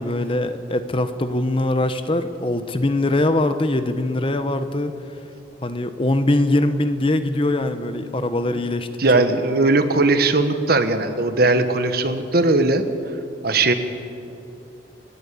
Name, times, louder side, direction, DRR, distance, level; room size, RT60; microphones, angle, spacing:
voice 1, 0.0-4.9 5.6-8.9 9.1-9.3, left 1 dB, 30° left, 10 dB, 0.9 m, -22 dB
voice 2, 9.0-12.8 13.4-13.7, right 2 dB, 55° right, 8 dB, 1.4 m, -18 dB
29.5 x 10.5 x 8.5 m, 2.7 s
head